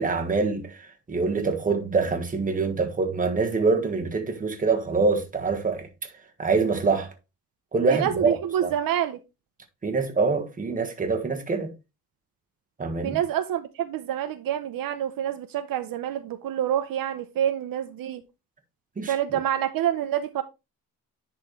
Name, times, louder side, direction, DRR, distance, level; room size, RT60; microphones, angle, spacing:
voice 1, 0.0-5.9 6.4-7.1 7.7-8.7 9.8-11.7 12.8-13.2 19.0-19.1, right 4 dB, 25° right, 1.4 m, -25 dB
voice 2, 7.9-9.2 13.0-18.2 19.1-20.4, right 10 dB, 70° right, 0.7 m, -27 dB
10.5 x 4.3 x 3.1 m
cardioid pair, 145°, 35 cm